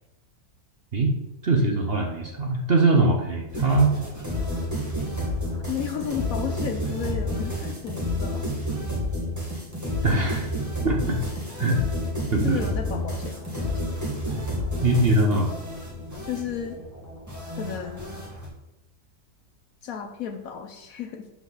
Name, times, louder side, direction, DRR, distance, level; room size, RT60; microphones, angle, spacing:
voice 1, 1.4-3.9 10.0-10.5 10.8-11.2 11.6-11.8 12.3-12.6 14.8-15.5, right 2 dB, 45° right, 2 dB, 0.9 m, -21 dB
sound 1, 3.5-18.5, left 1 dB, 10° right, 1.8 m, -30 dB
voice 2, 5.7-8.5 12.4-13.8 16.2-16.8 17.6-18.2 19.8-21.3, left 8 dB, 65° left, 7 dB, 0.9 m, -33 dB
12.0 x 4.7 x 4.0 m, 0.96 s
omnidirectional pair, 1.8 m